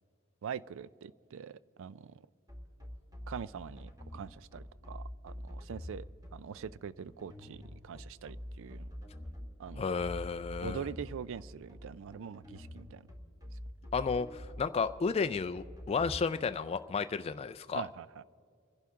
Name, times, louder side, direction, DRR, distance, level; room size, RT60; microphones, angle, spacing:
voice 1, 0.4-2.2 3.3-6.1 6.3-8.9 9.6-9.9 10.6-13.0 17.7-18.2, right 7 dB, 65° right, 0.4 m, -43 dB
sound 1, 2.5-16.2, equal, 15° right, 1.9 m, -45 dB
voice 2, 9.8-10.8 13.9-17.8, left 5 dB, 30° left, 0.3 m, -32 dB
29.5 x 11.5 x 3.6 m
head